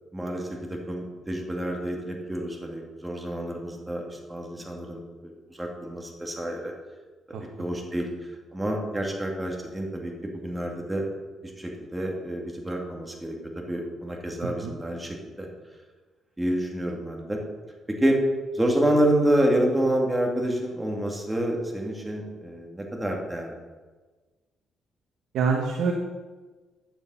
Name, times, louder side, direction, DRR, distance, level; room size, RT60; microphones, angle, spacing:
voice 1, 0.1-6.7 7.6-8.1 8.5-11.0 11.4-15.5 16.4-17.4 18.0-18.2 18.5-23.6, right 1 dB, 10° right, 0 dB, 2.3 m, -28 dB
voice 2, 14.4-14.7 25.3-25.9, right 5 dB, 75° right, 2 dB, 1.2 m, -25 dB
10.5 x 7.5 x 5.6 m, 1.3 s
cardioid pair, 90°, 0 cm